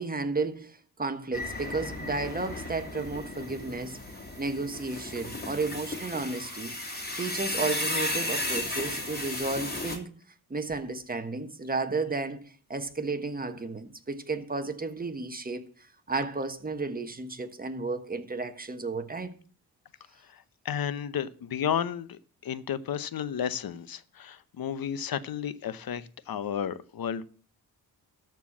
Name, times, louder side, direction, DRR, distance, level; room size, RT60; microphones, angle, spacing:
voice 1, 0.0-4.0 4.4-6.7 7.2-10.1 10.5-12.4 12.7-15.7 16.1-19.4, right 3 dB, 20° right, 1.3 m, -33 dB
sound 1, 1.3-10.0, left 1 dB, 25° left, 2.9 m, -34 dB
voice 2, 20.3-27.2, left 8 dB, 60° left, 0.8 m, -33 dB
13.5 x 4.6 x 7.2 m
cardioid pair, 85°, 40 cm